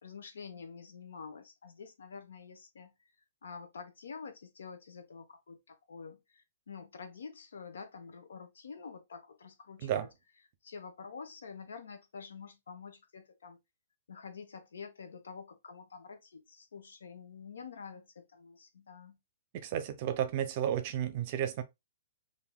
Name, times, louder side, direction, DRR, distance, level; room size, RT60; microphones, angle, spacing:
voice 1, 0.0-2.9 3.4-10.1 10.6-13.6 14.1-19.2, left 5 dB, 90° left, 0.7 m, -48 dB
voice 2, 19.5-21.6, right 10 dB, 40° right, 0.6 m, -32 dB
3.4 x 2.6 x 2.2 m
hypercardioid pair, 150°, 0 cm